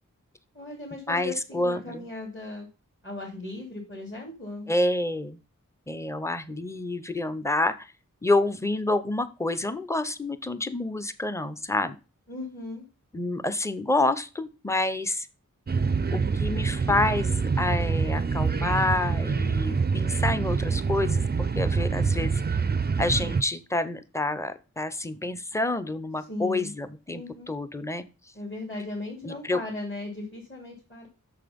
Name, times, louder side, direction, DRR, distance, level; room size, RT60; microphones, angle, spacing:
voice 1, 0.5-2.7 3.0-4.7 12.3-12.8 26.3-26.7 27.1-27.5 28.3-31.1, left 2 dB, 40° left, -2 dB, 3.0 m, -37 dB
voice 2, 1.1-2.1 4.7-5.4 5.9-7.9 8.2-12.0 13.1-15.3 16.1-22.3 23.0-28.0 29.2-29.6, left 2 dB, 10° left, 13 dB, 0.7 m, -28 dB
sound 1, 15.7-23.4, right 5 dB, 30° right, 0.4 m, -26 dB
6.9 x 5.7 x 5.2 m, 0.31 s
wide cardioid pair, 60°, 32 cm